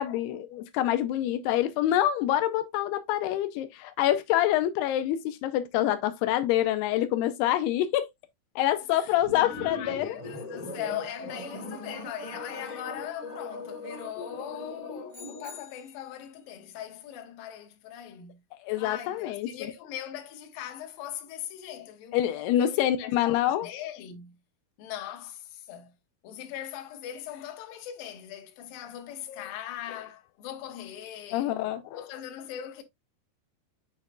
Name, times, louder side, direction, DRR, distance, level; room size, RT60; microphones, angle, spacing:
voice 1, 0.0-8.1 8.6-10.2 14.2-14.3 18.6-19.5 22.1-23.7 29.3-29.5 31.3-32.1, left 12 dB, 85° left, 2.7 m, -26 dB
voice 2, 8.9-18.4 18.8-24.4 24.8-25.9 26.2-31.5 32.0-32.8, left 11 dB, 70° left, 2.7 m, -40 dB
sound 1, 9.2-15.6, left 2 dB, 25° left, 0.8 m, -40 dB
sound 2, 15.1-16.2, left 4 dB, 20° right, 3.1 m, -49 dB
7.3 x 6.4 x 2.4 m
omnidirectional pair, 4.6 m